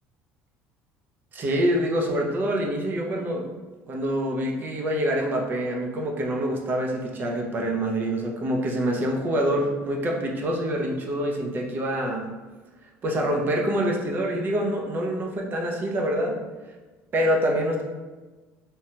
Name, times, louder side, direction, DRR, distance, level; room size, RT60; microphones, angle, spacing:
voice 1, 1.3-3.5 3.9-12.3 13.0-16.4 17.1-17.8, equal, 40° right, 0 dB, 0.6 m, -26 dB
3.1 x 2.2 x 2.8 m, 1.3 s
cardioid pair, 110°, 5 cm